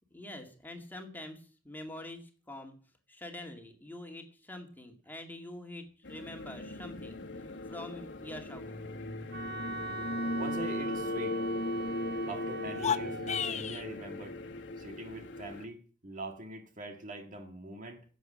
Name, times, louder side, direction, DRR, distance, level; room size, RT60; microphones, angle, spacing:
voice 1, 0.1-2.8 3.1-8.8, left 1 dB, 10° left, 2.2 m, -45 dB
sound 1, 6.0-15.6, left 1 dB, 70° left, 1.5 m, -38 dB
Wind instrument woodwind instrument, 9.3-13.5, right 2 dB, 60° right, 1.5 m, -40 dB
voice 2, 10.3-11.4 12.3-14.4 14.8-18.0, right 1 dB, 45° right, 1.8 m, -43 dB
sound 2, 12.7-13.9, left 8 dB, 40° left, 0.6 m, -32 dB
11.0 x 8.1 x 8.8 m
head